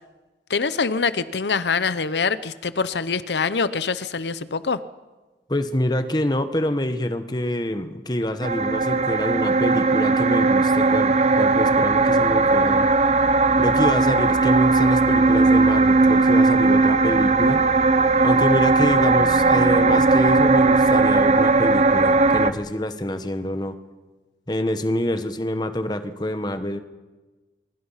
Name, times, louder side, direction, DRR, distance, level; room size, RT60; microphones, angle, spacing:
voice 1, 0.5-4.8 17.1-17.2, left 5 dB, 80° left, 15 dB, 0.7 m, -24 dB
voice 2, 5.5-12.9 13.6-17.6 18.2-23.8 24.5-26.8, left 1 dB, 25° left, 9 dB, 1.3 m, -26 dB
sound 1, 8.4-22.5, right 3 dB, 40° right, 0.8 m, -18 dB
25.0 x 23.0 x 5.7 m, 1.2 s
head